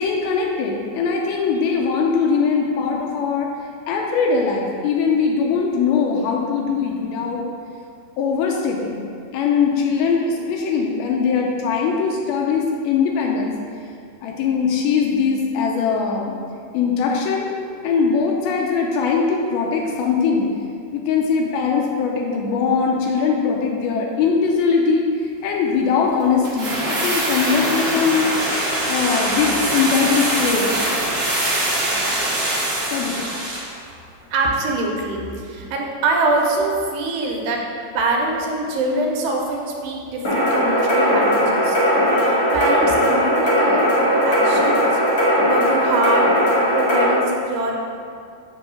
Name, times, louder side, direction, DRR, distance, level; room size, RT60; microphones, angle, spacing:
voice 1, 0.0-3.5 3.9-7.4 8.2-9.0 9.3-13.5 14.2-16.4 16.7-17.5 17.8-20.5 20.9-25.1 25.4-30.9 32.9-33.3, left 5 dB, 85° left, 0 dB, 2.2 m, -21 dB
sound 1, 26.4-33.7 34.0-34.1, right 1 dB, 55° right, 1.1 m, -23 dB
voice 2, 34.3-37.6 37.9-41.8 42.1-45.0 45.4-46.3 46.7-47.7, right 2 dB, 80° right, 0 dB, 2.9 m, -24 dB
sound 2, 40.2-47.1, equal, 60° left, 1.5 m, -18 dB
9.1 x 3.1 x 6.4 m, 2.3 s
omnidirectional pair, 4.9 m